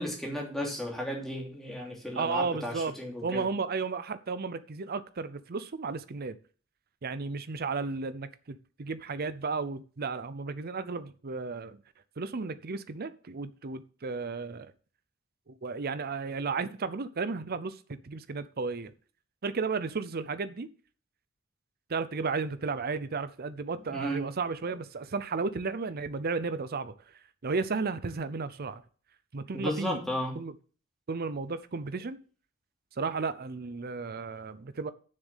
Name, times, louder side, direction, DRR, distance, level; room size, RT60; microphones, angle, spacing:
voice 1, 0.0-3.5 23.9-24.3 29.5-30.3, left 1 dB, ahead, 2.9 m, -34 dB
voice 2, 2.1-2.9 3.2-6.4 7.0-11.8 12.2-14.7 15.5-18.9 19.4-20.7 21.9-26.9 27.4-28.8 29.3-30.0 30.3-30.5 31.1-32.2 33.0-34.9, right 4 dB, 45° right, 0.6 m, -33 dB
7.3 x 6.5 x 7.3 m
head